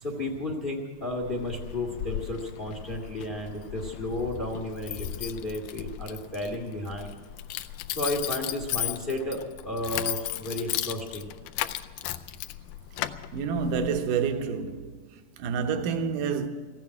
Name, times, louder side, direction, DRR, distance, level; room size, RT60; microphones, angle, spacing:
voice 1, 0.0-7.2 7.9-11.3, left 1 dB, 40° left, 0.8 m, -33 dB
Keys jangling, 1.0-14.1, left 13 dB, 80° left, 2.0 m, -36 dB
voice 2, 13.3-15.1 15.4-16.5, right 6 dB, 75° right, 2.5 m, -28 dB
15.5 x 9.0 x 9.6 m
omnidirectional pair, 3.9 m